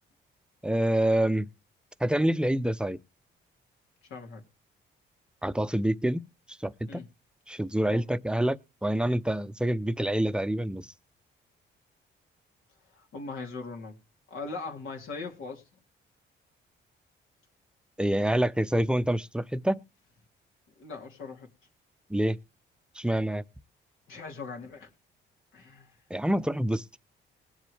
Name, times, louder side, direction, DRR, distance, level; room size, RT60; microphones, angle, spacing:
voice 1, 0.6-1.5 2.0-3.0 5.4-6.2 6.6-7.0 7.5-10.9 18.0-19.8 22.1-22.4 23.0-23.4 26.1-26.8, right 1 dB, 5° right, 0.5 m, -26 dB
voice 2, 4.0-4.4 6.9-7.1 7.9-8.0 12.9-14.0 14.3-15.6 20.8-21.5 24.1-24.9 25.5-25.9, left 4 dB, 85° left, 2.8 m, -40 dB
20.5 x 7.5 x 3.3 m
cardioid pair, 90°, 20 cm